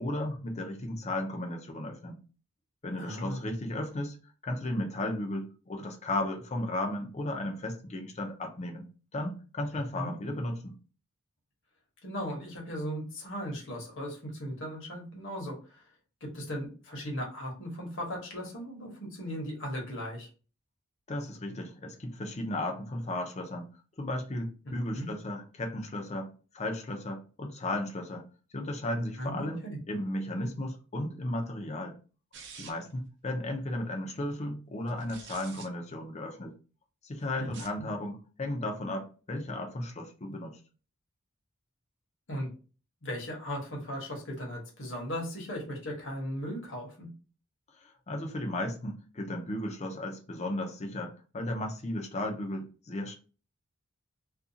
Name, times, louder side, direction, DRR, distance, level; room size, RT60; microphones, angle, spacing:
voice 1, 0.0-2.2 2.8-4.2 4.4-8.9 9.1-10.7 21.1-23.7 24.0-28.3 28.5-32.0 32.6-36.5 37.0-40.6 47.8-53.2, left 1 dB, 30° left, 0.5 m, -35 dB
voice 2, 3.0-3.5 9.9-10.1 12.0-15.8 16.2-20.3 24.6-25.1 29.2-29.8 37.4-37.5 42.3-42.5 43.0-47.1, equal, 60° left, 1.0 m, -37 dB
sound 1, 32.3-33.0 34.9-35.7 37.4-37.8, right 6 dB, 55° right, 0.5 m, -47 dB
2.5 x 2.2 x 2.7 m
head